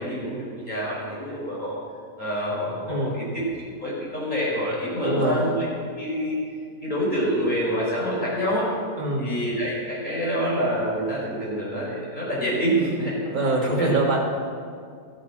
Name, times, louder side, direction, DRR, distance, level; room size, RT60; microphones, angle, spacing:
voice 1, 0.0-1.7 2.2-3.4 3.8-5.7 6.0-6.4 6.8-8.7 9.2-13.2 13.6-13.9, equal, 30° left, -6 dB, 5.6 m, -26 dB
voice 2, 2.9-3.2 5.0-5.4 9.0-9.3 13.3-14.3, right 2 dB, 25° right, -3 dB, 2.4 m, -24 dB
14.5 x 14.0 x 6.2 m, 2.2 s
omnidirectional pair, 1.6 m